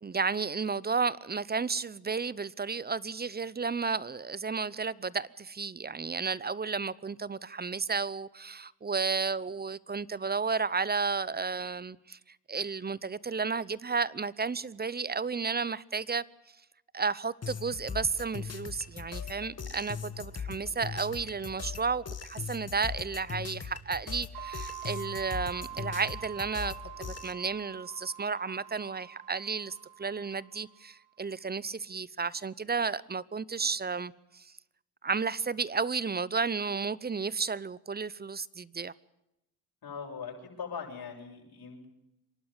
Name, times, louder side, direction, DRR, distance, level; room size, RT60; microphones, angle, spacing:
voice 1, 0.0-16.2 16.9-34.5 35.0-38.9, right 5 dB, 20° right, 0.7 m, -32 dB
sound 1, 17.4-27.3, left 6 dB, 35° left, 1.8 m, -40 dB
sound 2, 24.3-30.9, right 13 dB, 70° right, 1.4 m, -45 dB
voice 2, 39.8-41.9, left 6 dB, 55° left, 7.0 m, -41 dB
26.0 x 11.5 x 9.7 m
supercardioid pair, 65°, 43 cm